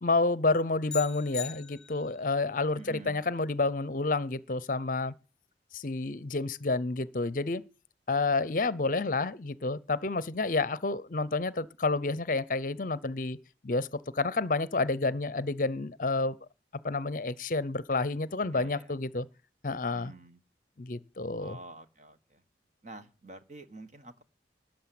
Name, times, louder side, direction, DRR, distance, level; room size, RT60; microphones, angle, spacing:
voice 1, 0.0-5.1 5.7-7.6 8.1-13.4 13.6-13.9 14.1-16.4 16.8-19.3 19.6-20.1 20.8-21.6, left 3 dB, 45° left, 0.7 m, -29 dB
sound 1, 0.9-2.3, left 8 dB, 5° left, 1.6 m, -41 dB
voice 2, 2.8-3.2 18.4-19.0 19.9-20.4 21.4-22.4 22.8-24.2, right 2 dB, 40° right, 1.5 m, -48 dB
13.0 x 8.7 x 7.7 m
head